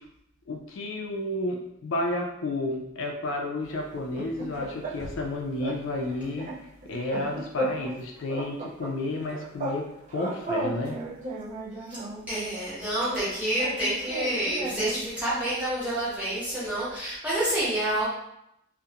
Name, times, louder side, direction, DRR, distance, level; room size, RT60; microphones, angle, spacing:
voice 1, 0.5-6.5 6.9-9.8 10.1-11.0, left 2 dB, 65° left, 1 dB, 0.3 m, -31 dB
sound 1, 3.9-5.3 5.6-5.8 6.1-8.0 8.3-9.8 10.1-12.3 13.1-15.1, right 2 dB, 35° right, 0.4 m, -35 dB
voice 2, 12.3-18.1, right 1 dB, 5° right, -10 dB, 0.9 m, -28 dB
2.4 x 2.0 x 2.7 m, 0.80 s
head